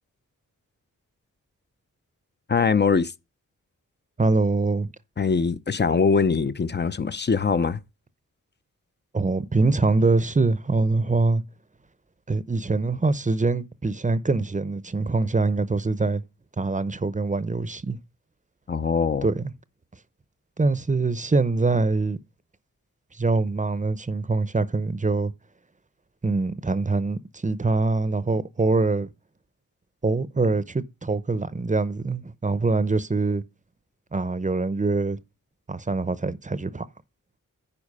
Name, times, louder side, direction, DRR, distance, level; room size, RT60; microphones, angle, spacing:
voice 1, 2.5-3.1 5.2-7.8 18.7-19.3, left 5 dB, 30° left, 0.6 m, -22 dB
voice 2, 4.2-4.9 9.1-11.4 12.3-16.2 16.6-18.0 19.2-19.4 20.6-22.2 23.2-25.3 26.2-29.1 30.0-33.4 34.1-35.2 35.7-36.9, right 3 dB, 20° right, 0.7 m, -24 dB
9.8 x 4.3 x 5.4 m
cardioid pair, 65°, 34 cm